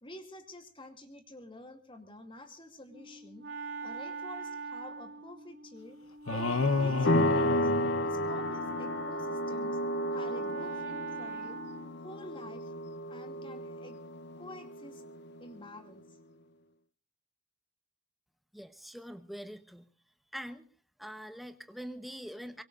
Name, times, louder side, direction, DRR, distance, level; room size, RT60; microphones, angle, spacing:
voice 1, 0.0-3.4 3.8-6.0 6.3-7.7 8.0-9.8 10.1-11.6 12.0-12.7 13.1-14.0 14.4-15.0 15.4-16.2, left 1 dB, 25° left, 6 dB, 2.4 m, -49 dB
Wind instrument woodwind instrument, 2.9-12.0, right 4 dB, 60° right, 1.9 m, -42 dB
sound 1, 6.3-8.8, left 3 dB, 70° left, 1.1 m, -31 dB
sound 2, 7.0-15.4, left 1 dB, 50° left, 0.8 m, -32 dB
voice 2, 18.5-19.9 20.3-20.6 21.0-22.6, equal, ahead, 9 dB, 1.0 m, -43 dB
24.0 x 24.0 x 2.5 m, 0.39 s
head